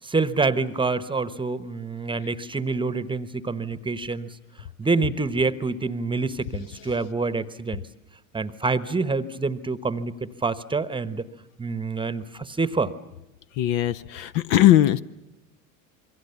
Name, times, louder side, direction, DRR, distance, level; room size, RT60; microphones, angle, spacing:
voice 1, 0.0-4.3 4.8-7.8 8.3-11.3 11.6-12.9, right 3 dB, 10° right, 15 dB, 1.1 m, -26 dB
voice 2, 13.6-15.0, left 13 dB, 50° left, 13 dB, 0.8 m, -19 dB
28.0 x 23.0 x 7.0 m, 0.93 s
figure-of-eight pair, 80°, 43 cm